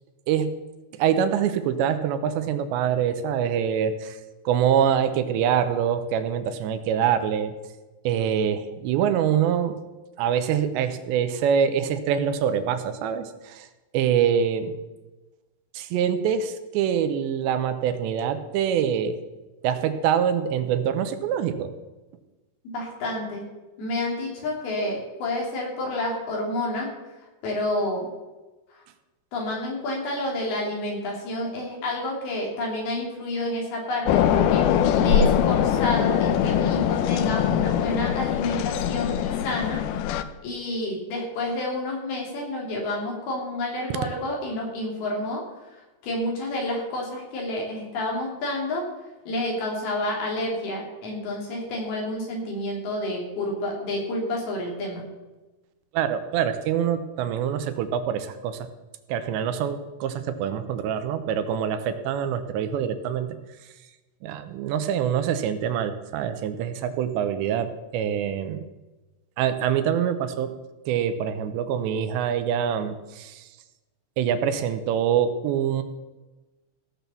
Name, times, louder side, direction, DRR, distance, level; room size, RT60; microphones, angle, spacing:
voice 1, 0.9-4.2 4.5-7.5 8.0-9.8 10.2-13.7 13.9-14.7 15.7-19.2 19.6-21.7 55.9-58.7 59.1-63.4 64.2-68.6 69.4-70.5 70.9-73.5 74.2-75.8, right 8 dB, 85° right, 9 dB, 3.1 m, -25 dB
voice 2, 22.7-23.5 23.8-26.9 27.4-28.1 28.7-28.8 29.3-39.8 40.4-45.4 45.7-48.8 49.3-55.0, left 1 dB, 65° left, -2 dB, 4.7 m, -29 dB
sound 1, 34.1-40.2, left 9 dB, 85° left, 2.3 m, -22 dB
16.5 x 6.1 x 6.9 m, 1.1 s
omnidirectional pair, 5.0 m